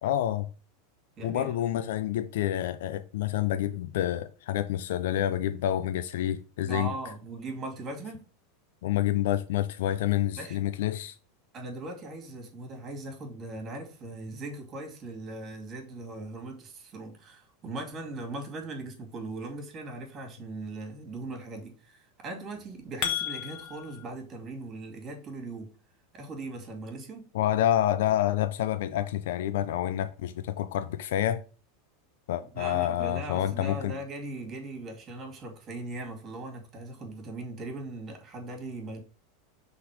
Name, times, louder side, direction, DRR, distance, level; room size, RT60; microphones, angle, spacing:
voice 1, 0.0-0.5 1.2-6.9 8.8-11.2 27.3-31.4 32.3-34.0, left 12 dB, 75° left, 0.5 m, -28 dB
voice 2, 1.2-1.7 6.7-8.3 10.4-10.6 11.5-25.7 26.1-27.3 32.4-39.0, right 2 dB, 35° right, 2.5 m, -39 dB
sound 1, 22.5-24.0, left 10 dB, 55° left, 1.5 m, -33 dB
5.8 x 3.9 x 5.1 m
supercardioid pair, 120°, 0 cm